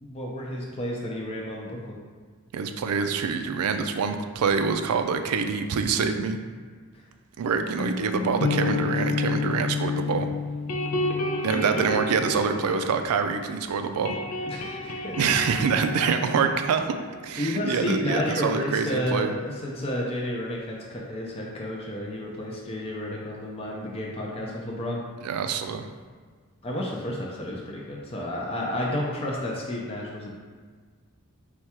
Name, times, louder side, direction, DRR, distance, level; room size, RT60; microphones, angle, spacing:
voice 1, 0.0-2.0 14.5-15.2 17.4-25.0 26.6-30.3, left 1 dB, 25° left, -3 dB, 0.5 m, -31 dB
voice 2, 2.5-6.4 7.4-10.3 11.4-14.2 15.2-16.9 17.2-19.3 25.2-25.9, right 5 dB, 85° right, 7 dB, 0.4 m, -25 dB
sound 1, 7.8-13.6 13.8-17.3, left 3 dB, 85° left, 0.6 m, -30 dB
4.6 x 2.3 x 4.2 m, 1.6 s
head